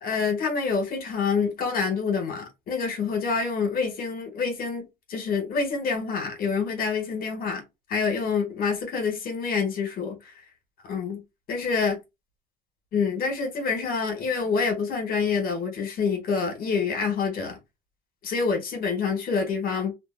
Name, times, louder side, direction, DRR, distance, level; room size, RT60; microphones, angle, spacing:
voice 1, 0.0-7.6 7.9-10.2 10.8-11.2 11.5-12.0 12.9-17.6 18.2-19.9, left 5 dB, 60° left, 1.3 m, -27 dB
2.6 x 2.4 x 2.4 m
cardioid pair, 110°, 17 cm